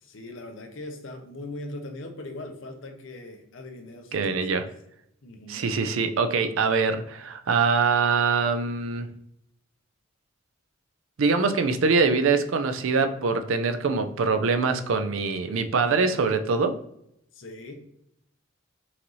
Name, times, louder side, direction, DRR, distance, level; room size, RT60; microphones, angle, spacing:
voice 1, 0.0-4.7 5.2-5.7 17.3-17.7, left 2 dB, 70° left, 4 dB, 0.8 m, -40 dB
voice 2, 4.1-4.6 5.5-9.1 11.2-16.7, right 4 dB, 85° right, 8 dB, 0.5 m, -23 dB
5.7 x 2.7 x 3.1 m, 0.77 s
head